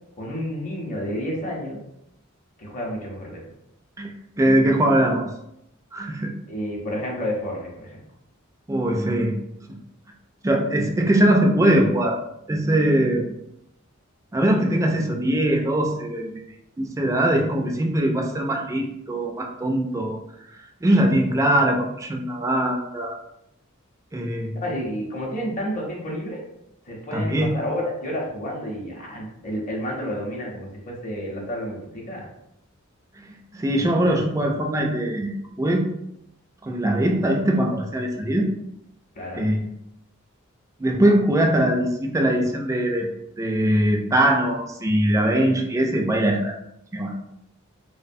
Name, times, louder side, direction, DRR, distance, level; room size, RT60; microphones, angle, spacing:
voice 1, 0.2-1.8 2.6-3.4 6.5-8.0 24.5-26.4 26.9-32.3 39.1-39.5, equal, 40° left, -2 dB, 0.7 m, -30 dB
voice 2, 4.4-5.2 5.9-6.3 8.7-9.3 9.7-9.8 10.4-12.2 12.5-13.3 14.3-16.3 16.8-20.2 20.8-23.2 24.1-24.6 27.1-27.5 33.5-35.3 35.6-35.8 36.6-38.5 39.4-39.7 40.8-43.1 43.4-46.6 46.9-47.1, right 1 dB, 15° right, 2 dB, 0.3 m, -21 dB
2.9 x 2.0 x 2.6 m, 0.80 s
head